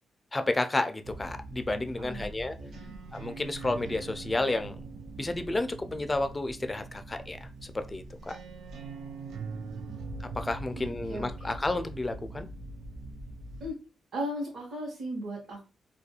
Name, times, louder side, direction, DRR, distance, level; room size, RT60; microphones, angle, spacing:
voice 1, 0.3-2.5 3.1-4.8 5.2-8.4 10.2-12.5, left 2 dB, 20° left, 8 dB, 0.3 m, -31 dB
sound 1, 1.0-13.7, right 3 dB, 85° right, 0.4 m, -42 dB
voice 2, 2.6-3.0 10.8-11.5 13.6-13.8 14.1-15.7, equal, 65° right, -4 dB, 0.9 m, -37 dB
2.3 x 2.3 x 2.8 m, 0.31 s
cardioid pair, 105°, 0 cm